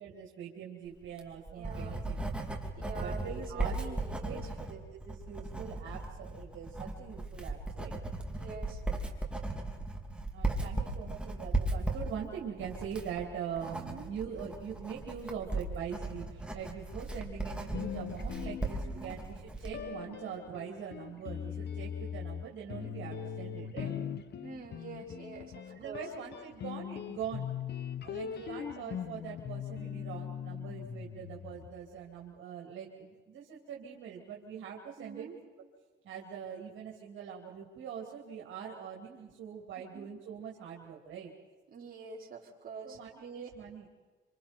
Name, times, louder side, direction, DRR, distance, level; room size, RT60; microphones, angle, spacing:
voice 1, 0.0-2.2 2.9-4.0 4.3-4.4 4.7-4.8 5.0-8.0 10.3-24.0 25.7-27.5 28.0-35.3 36.0-41.3 42.8-43.8, right 8 dB, 75° right, -1 dB, 2.9 m, -43 dB
Writing, 1.0-19.8, right 2 dB, 5° right, 3.0 m, -37 dB
voice 2, 1.5-2.0 2.8-4.5 8.3-8.8 13.7-14.1 18.8-19.2 24.4-26.1 28.2-28.5 35.0-35.4 39.9-40.1 41.7-43.5, right 5 dB, 45° right, -2 dB, 5.1 m, -45 dB
sound 1, 17.7-19.2 19.7-31.9, left 8 dB, 60° left, 1.0 m, -41 dB
27.0 x 26.5 x 4.5 m, 1.3 s
cardioid pair, 90°, 20 cm